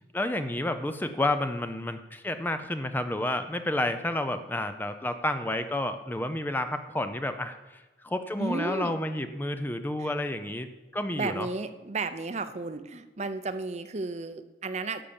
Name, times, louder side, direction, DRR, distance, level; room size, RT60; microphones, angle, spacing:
voice 1, 0.1-11.5, left 1 dB, 10° left, 9 dB, 0.5 m, -30 dB
voice 2, 8.4-9.0 10.0-10.1 11.1-15.0, right 3 dB, 40° right, 10 dB, 0.7 m, -33 dB
11.5 x 7.2 x 7.1 m, 1.2 s
head